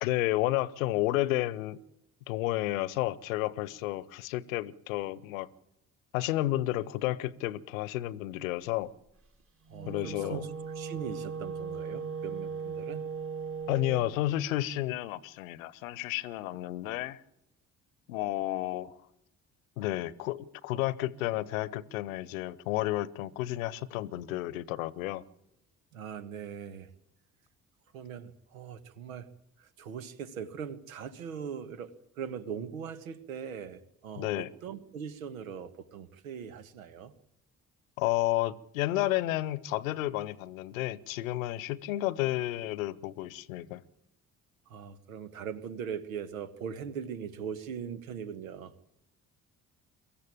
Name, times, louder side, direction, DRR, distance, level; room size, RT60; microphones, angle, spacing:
voice 1, 0.0-1.8 2.3-5.5 6.1-8.9 9.9-10.4 13.7-17.2 18.1-19.0 19.8-25.2 34.2-34.5 38.0-43.8, left 16 dB, 75° left, 0.9 m, -31 dB
Wind instrument woodwind instrument, 9.6-14.2, right 5 dB, 30° right, 2.7 m, -38 dB
voice 2, 9.7-13.0 25.9-26.9 27.9-29.3 29.6-37.1 44.7-48.7, right 7 dB, 80° right, 1.4 m, -40 dB
23.5 x 14.5 x 8.7 m
figure-of-eight pair, 50°, 41 cm